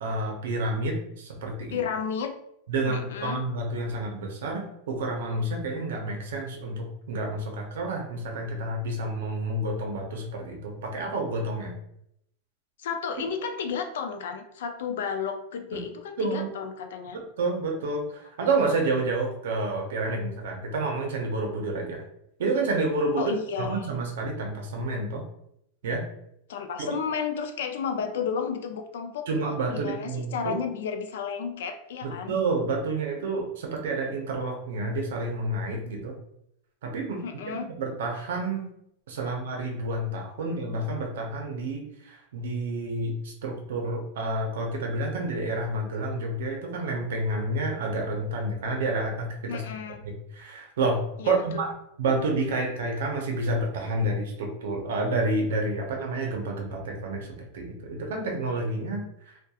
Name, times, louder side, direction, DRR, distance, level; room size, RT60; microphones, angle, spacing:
voice 1, 0.0-1.8 2.7-11.7 15.7-15.8 16.2-16.5 17.1-22.0 22.4-25.2 25.8-26.1 26.8-26.9 29.3-30.5 32.0-36.2 36.8-38.7 39.1-49.6 50.3-51.7 52.0-59.4, right 2 dB, 85° right, 1 dB, 0.5 m, -29 dB
voice 2, 1.7-2.3 2.9-3.4 12.8-17.2 23.2-23.9 26.5-29.3 29.7-32.4 37.2-37.7 39.2-39.3 49.5-50.0 51.2-51.6, left 6 dB, 80° left, 7 dB, 0.3 m, -32 dB
2.3 x 2.2 x 2.7 m, 0.76 s
supercardioid pair, 180°, 0 cm